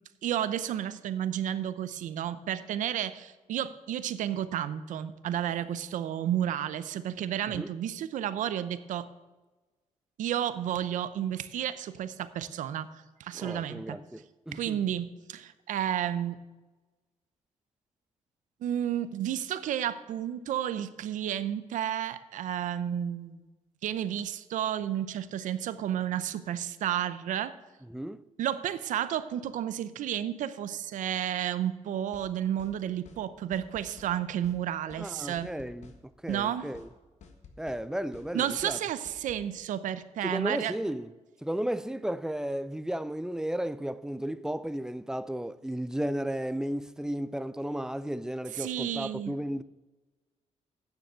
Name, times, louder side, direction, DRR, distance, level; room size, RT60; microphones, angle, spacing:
voice 1, 0.2-9.1 10.2-12.9 13.2-14.0 14.5-16.4 18.6-23.4 23.8-27.5 28.4-35.5 36.3-36.7 38.3-40.7 48.5-49.3, right 10 dB, 85° right, 0.7 m, -32 dB
voice 2, 13.3-14.8 27.8-28.2 35.0-35.9 36.2-36.9 37.6-38.8 40.2-41.1 41.4-49.6, right 1 dB, 5° right, 0.4 m, -34 dB
sound 1, 32.1-32.3 32.6-32.8 33.1-33.2 33.5-34.1 34.4-34.6 34.9-35.1 35.4-36.0 36.3-36.4 36.7-36.9 37.2-37.8 38.1-38.3 38.6-38.8 39.1-39.4, left 5 dB, 65° left, 1.6 m, -52 dB
9.7 x 6.9 x 7.5 m
cardioid pair, 100°, 13 cm